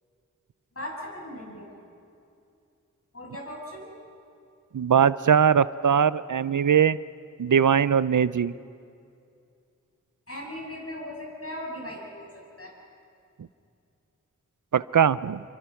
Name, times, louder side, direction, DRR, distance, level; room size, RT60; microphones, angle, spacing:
voice 1, 0.8-1.7 3.1-3.9 10.3-12.3 12.6-12.7, left 1 dB, 50° left, -2 dB, 7.1 m, -38 dB
voice 2, 4.7-7.0 7.4-8.5 14.7-15.4, right 7 dB, 80° right, 17 dB, 0.5 m, -21 dB
27.0 x 24.5 x 5.8 m, 2.5 s
wide cardioid pair, 45°, 31 cm